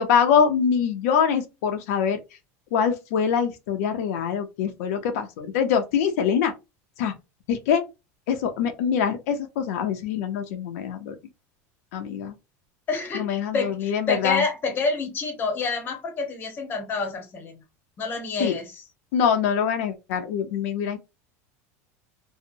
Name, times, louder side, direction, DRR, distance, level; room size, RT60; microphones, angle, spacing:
voice 1, 0.0-2.2 2.7-6.5 7.0-7.1 7.5-7.8 8.3-11.1 11.9-12.3 13.1-14.4 18.4-18.5 19.1-21.0, left 7 dB, 80° left, 0.6 m, -24 dB
voice 2, 12.9-17.6 18.0-18.8, left 4 dB, 25° left, 0.8 m, -28 dB
2.7 x 2.0 x 2.5 m
supercardioid pair, 155°, 8 cm